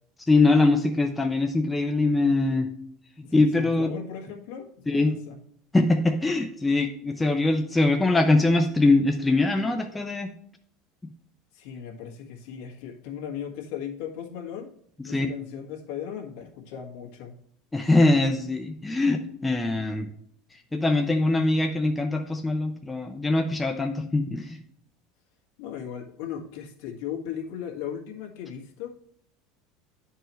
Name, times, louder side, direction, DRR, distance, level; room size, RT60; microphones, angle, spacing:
voice 1, 0.3-2.7 3.3-3.9 4.9-5.2 5.7-10.3 15.1-15.3 17.7-20.1 20.7-24.6, left 2 dB, 10° left, 4 dB, 0.5 m, -22 dB
voice 2, 3.2-5.4 11.5-14.7 15.0-17.4 25.6-29.0, left 8 dB, 65° left, 0 dB, 1.7 m, -37 dB
10.5 x 4.6 x 3.1 m, 0.67 s
cardioid pair, 155°, 0 cm